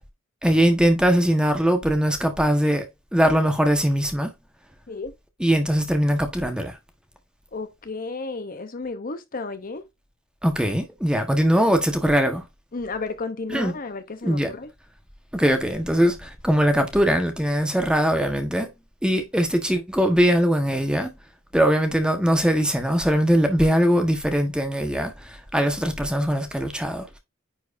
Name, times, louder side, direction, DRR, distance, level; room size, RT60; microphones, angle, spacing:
voice 1, 0.4-2.9 3.1-4.3 5.4-6.7 10.4-12.4 13.5-13.7 14.2-14.5 15.3-18.7 19.0-21.1 21.5-27.2, equal, 5° right, 1.3 m, -21 dB
voice 2, 7.5-9.8 12.7-14.7 25.5-25.7, left 3 dB, 45° left, 0.8 m, -33 dB
9.8 x 4.4 x 2.6 m
head